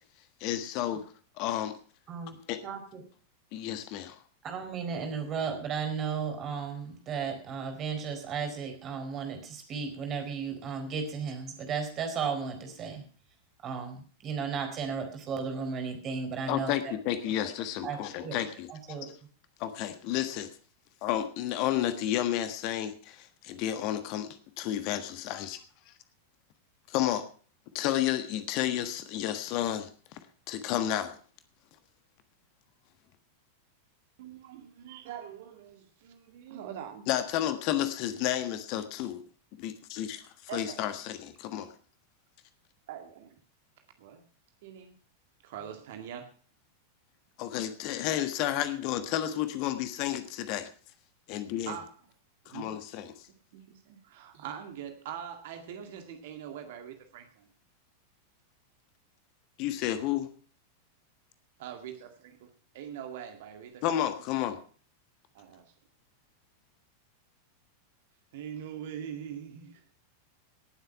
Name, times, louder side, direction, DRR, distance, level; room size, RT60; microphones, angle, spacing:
voice 1, 0.4-1.0 1.4-1.8 2.5-2.6 3.5-4.2 16.5-19.0 19.6-20.5 21.0-25.6 25.9-26.0 26.9-27.3 27.7-30.2 30.5-31.2 37.1-39.2 39.6-41.7 47.4-50.7 51.3-51.7 52.4-53.3 59.6-60.3 63.8-64.6, left 12 dB, 45° left, 1.5 m, -31 dB
voice 2, 2.6-3.0 4.4-13.0 13.6-16.9 17.8-18.4 18.7-19.1, right 6 dB, 30° right, 4.1 m, -34 dB
voice 3, 34.2-37.1 40.5-40.8 42.9-43.4 44.0-44.2 44.6-44.9 45.4-46.3 51.7-51.9 52.5-52.7 53.5-57.5 61.6-64.0 65.3-65.7 68.3-69.8, right 9 dB, 55° right, 2.0 m, -43 dB
18.0 x 8.1 x 5.7 m
figure-of-eight pair, 90°, 0 cm